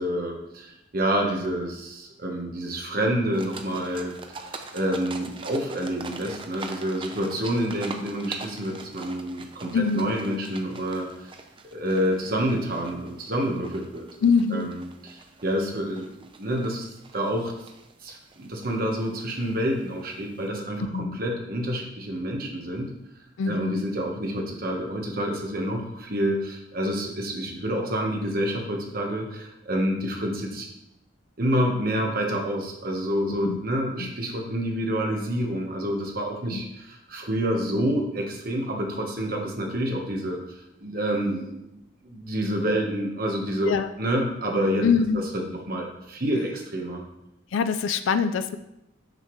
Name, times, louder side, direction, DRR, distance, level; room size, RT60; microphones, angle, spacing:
voice 1, 0.0-4.1 4.7-11.3 11.7-14.1 14.5-16.1 16.4-17.5 18.0-22.9 23.5-30.7 31.4-41.8 42.0-43.7 44.0-44.9 45.3-47.0, equal, 50° right, 1 dB, 1.3 m, -28 dB
sound 1, 3.3-20.5, right 4 dB, 25° right, 0.5 m, -44 dB
voice 2, 9.7-10.2 14.2-14.7 20.9-21.2 23.4-23.8 33.3-33.6 34.0-34.1 36.5-36.6 43.6-43.9 44.8-45.2 47.5-48.6, left 5 dB, 90° left, 11 dB, 0.4 m, -24 dB
6.6 x 6.5 x 3.2 m, 0.87 s
head